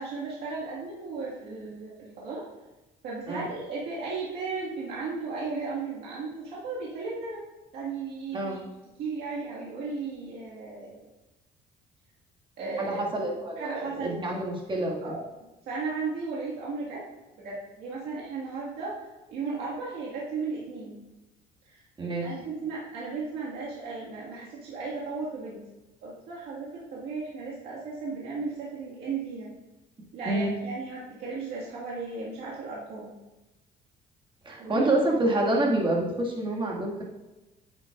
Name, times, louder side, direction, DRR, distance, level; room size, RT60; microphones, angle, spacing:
voice 1, 0.0-2.4 3.0-7.4 7.7-8.6 9.0-11.1 12.6-13.0 13.6-14.1 15.0-17.0 17.4-21.0 21.7-21.8 22.2-25.6 26.0-29.5 30.1-33.1 34.6-35.0, right 4 dB, 75° right, -6 dB, 1.9 m, -35 dB
voice 2, 8.3-8.7 12.8-15.1 22.0-22.3 30.3-30.5 34.4-37.0, right 1 dB, 30° right, -2 dB, 2.0 m, -27 dB
9.2 x 7.9 x 2.5 m, 1.0 s
cardioid pair, 110°, 17 cm